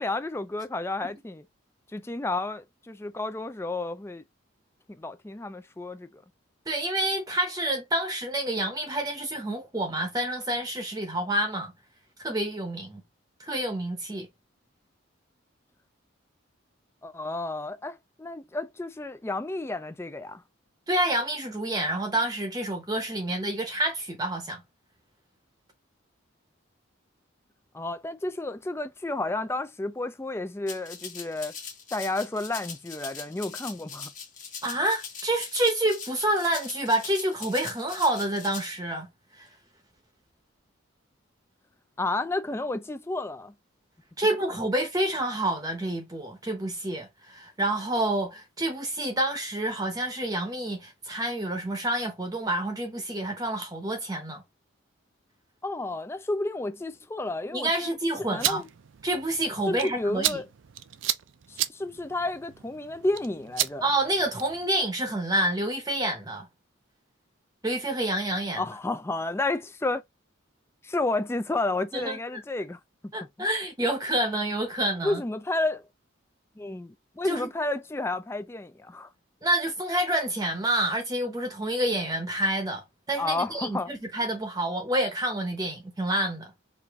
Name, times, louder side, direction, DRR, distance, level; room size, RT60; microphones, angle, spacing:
voice 1, 0.0-1.4 1.9-4.2 5.0-6.2 17.0-20.4 27.7-31.6 31.9-34.1 42.0-43.5 55.6-58.0 58.3-58.7 59.7-60.5 61.5-63.8 68.6-70.0 70.8-73.1 75.0-75.9 76.6-79.1 83.2-83.9, left 2 dB, 10° left, 0.3 m, -31 dB
voice 2, 6.7-11.7 12.2-13.0 13.4-14.3 20.9-24.6 34.6-39.1 39.4-39.5 44.2-54.4 57.5-58.6 59.0-60.4 63.8-66.5 67.6-68.6 71.9-72.2 73.1-75.2 77.2-77.5 79.4-86.5, right 1 dB, 20° right, 0.8 m, -28 dB
Rattle (instrument), 30.7-38.7, left 6 dB, 35° left, 1.3 m, -41 dB
sound 1, 58.2-64.7, right 13 dB, 65° right, 0.4 m, -34 dB
4.9 x 2.6 x 3.5 m
head